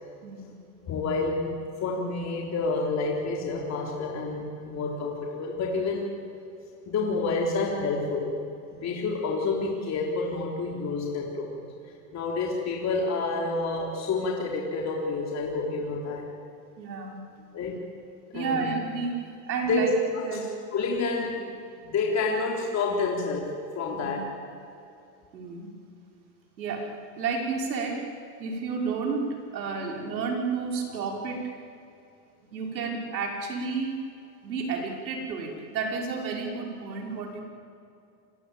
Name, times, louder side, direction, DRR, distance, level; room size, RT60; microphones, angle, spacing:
voice 1, 0.2-0.5 16.8-17.2 18.3-19.9 20.3-20.4 23.9-24.2 25.3-25.7 26.6-28.1 28.4-31.5 32.5-34.1 34.4-37.4, right 4 dB, 90° right, 1 dB, 5.8 m, -31 dB
voice 2, 0.9-1.5 1.8-6.1 6.9-8.4 8.7-11.6 12.1-16.3 17.5-17.8 18.3-18.6 19.6-19.9 20.2-21.5 21.8-24.3, left 3 dB, 30° left, -1 dB, 3.9 m, -29 dB
28.5 x 21.5 x 9.0 m, 2.6 s
supercardioid pair, 120°, 50 cm